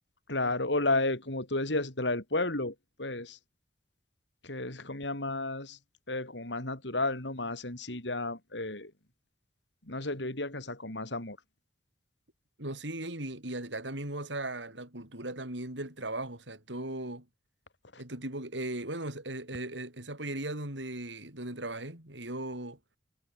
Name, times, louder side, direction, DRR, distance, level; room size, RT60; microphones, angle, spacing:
voice 1, 0.3-3.4 4.5-5.8 6.1-8.9 9.9-11.4, left 2 dB, 80° left, 5.2 m, -32 dB
voice 2, 12.6-17.3 18.0-22.8, right 1 dB, 90° right, 7.2 m, -37 dB
head